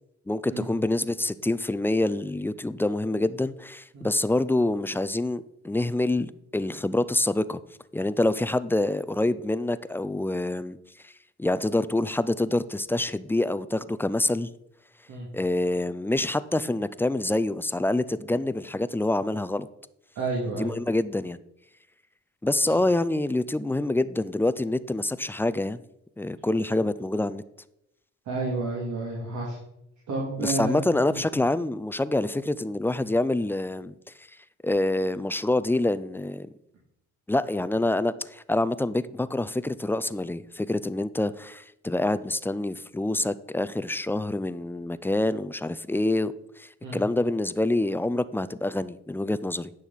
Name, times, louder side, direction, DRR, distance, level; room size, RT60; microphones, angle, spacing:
voice 1, 0.3-7.6 7.9-10.8 11.0-11.1 11.4-14.5 15.3-19.7 20.5-21.4 22.4-25.8 26.2-27.4 30.4-33.9 34.6-36.5 37.3-49.7, left 2 dB, 10° left, 0.3 m, -26 dB
voice 2, 20.2-20.7 22.7-22.8 28.3-29.6 30.1-31.2 46.8-47.0, right 3 dB, 70° right, 2.3 m, -31 dB
10.0 x 6.2 x 4.0 m
cardioid pair, 90°, 30 cm